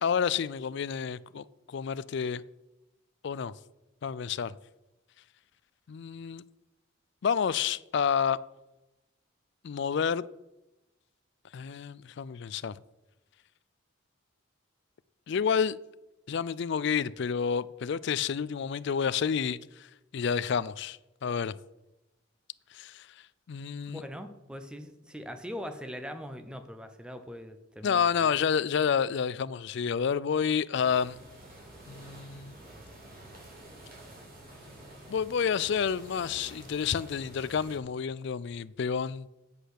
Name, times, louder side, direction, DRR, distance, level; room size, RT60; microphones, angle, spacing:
voice 1, 0.0-2.4 3.2-3.5 4.0-4.5 5.9-6.4 7.2-8.4 9.6-10.3 11.5-12.8 15.3-15.8 16.3-21.6 22.7-23.1 23.5-24.0 27.8-31.2 31.9-32.5 35.1-39.3, left 7 dB, 55° left, 0.4 m, -29 dB
voice 2, 23.8-28.3, equal, 5° right, 0.7 m, -41 dB
sound 1, 30.8-37.8, right 1 dB, 45° right, 3.3 m, -49 dB
8.2 x 7.8 x 6.5 m
head